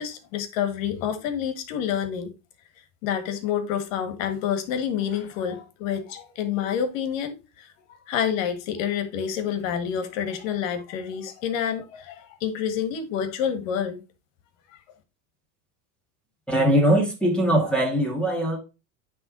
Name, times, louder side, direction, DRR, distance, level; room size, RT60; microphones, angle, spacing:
voice 1, 0.0-2.3 3.0-7.7 8.1-14.0, left 8 dB, 75° left, 1.8 m, -28 dB
voice 2, 16.5-18.6, right 1 dB, 5° left, 1.6 m, -21 dB
9.3 x 3.6 x 3.8 m
supercardioid pair, 145°, 39 cm